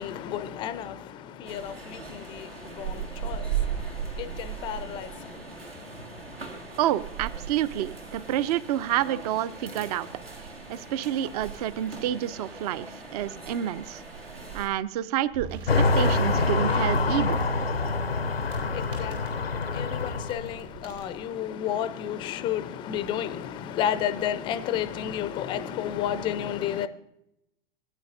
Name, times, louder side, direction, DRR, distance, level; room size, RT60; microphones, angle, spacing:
voice 1, 0.0-6.8 18.3-26.9, left 10 dB, 15° left, 0.4 m, -32 dB
sound 1, 1.4-14.7, right 7 dB, 85° right, 1.8 m, -37 dB
voice 2, 6.8-10.1 10.7-14.0 14.5-15.6 16.0-17.4, right 12 dB, 40° right, 0.4 m, -28 dB
sound 2, 15.2-21.2, right 6 dB, 65° right, 3.4 m, -45 dB
sound 3, 15.7-20.5, left 3 dB, 90° left, 0.5 m, -25 dB
15.5 x 9.0 x 2.6 m
figure-of-eight pair, 95°, 29 cm